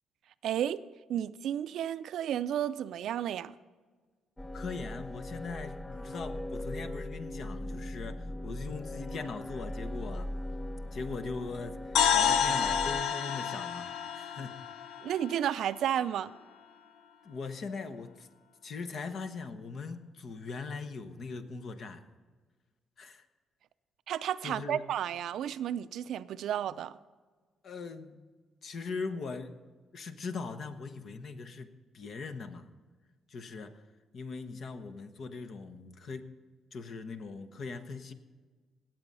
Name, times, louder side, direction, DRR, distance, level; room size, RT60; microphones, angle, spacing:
voice 1, 0.4-0.8 1.1-3.5 15.0-16.3 24.1-27.0, right 10 dB, 75° right, 0.4 m, -32 dB
sound 1, 4.4-13.0, left 1 dB, 15° left, 0.4 m, -39 dB
voice 2, 4.5-10.3 10.9-14.6 17.2-18.3 18.6-22.1 23.0-23.3 24.4-24.8 27.6-28.3 28.6-29.6 29.9-32.7 33.3-33.8 34.1-36.3 36.7-38.1, left 4 dB, 55° left, 1.0 m, -40 dB
sound 2, 12.0-15.9, left 8 dB, 85° left, 0.7 m, -29 dB
18.0 x 7.7 x 5.5 m
cardioid pair, 90°, 0 cm